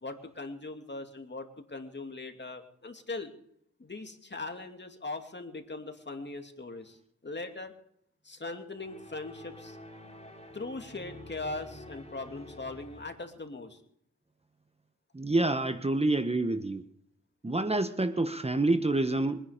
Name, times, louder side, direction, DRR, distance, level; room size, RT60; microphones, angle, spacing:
voice 1, 0.0-3.3 3.8-7.0 7.2-7.7 8.2-9.8 10.5-13.8, left 3 dB, 35° left, 5 dB, 2.6 m, -40 dB
sound 1, 8.8-13.4, left 1 dB, 20° left, 3.0 m, -48 dB
voice 2, 15.1-16.8 17.4-19.4, right 2 dB, 20° right, 10 dB, 1.1 m, -27 dB
23.5 x 10.0 x 5.1 m, 0.72 s
cardioid pair, 60°, 29 cm